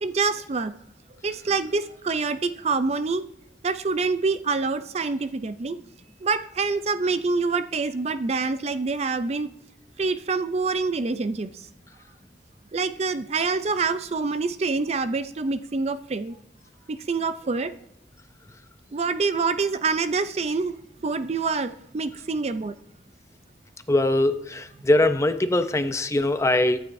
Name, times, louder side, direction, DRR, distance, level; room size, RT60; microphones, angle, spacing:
voice 1, 0.0-0.7 1.2-3.3 3.6-5.8 6.2-9.5 10.0-11.7 12.7-16.4 16.9-17.7 18.9-20.8 21.0-22.7, right 4 dB, 35° right, 12 dB, 0.4 m, -26 dB
voice 2, 23.9-26.8, left 1 dB, 15° left, 10 dB, 0.5 m, -22 dB
22.5 x 9.6 x 2.6 m, 0.79 s
head